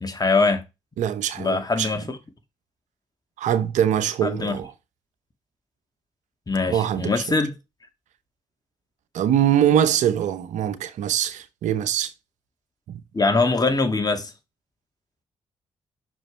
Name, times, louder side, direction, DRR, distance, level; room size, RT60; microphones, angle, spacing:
voice 1, 0.0-0.6 1.4-2.2 4.2-4.6 6.5-7.6 13.1-14.3, left 3 dB, 30° left, 2.2 m, -22 dB
voice 2, 1.0-1.9 3.4-4.7 6.7-7.4 9.1-12.1 12.9-13.0, right 10 dB, 75° right, 0.9 m, -23 dB
6.2 x 5.1 x 4.6 m
hypercardioid pair, 45°, 12 cm